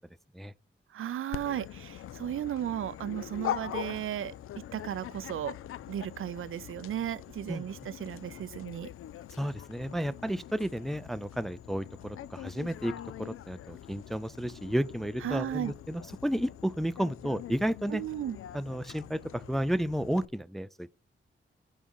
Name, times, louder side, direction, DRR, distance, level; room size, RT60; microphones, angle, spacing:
voice 1, 0.9-5.6 5.9-8.9 15.2-15.7 17.9-18.4, right 11 dB, 75° right, 0.5 m, -35 dB
Dog, 1.3-20.2, left 11 dB, 85° left, 0.4 m, -43 dB
voice 2, 9.4-12.9 13.2-18.0 18.5-20.9, equal, ahead, 0.3 m, -32 dB
5.5 x 4.9 x 6.1 m
cardioid pair, 90°, 21 cm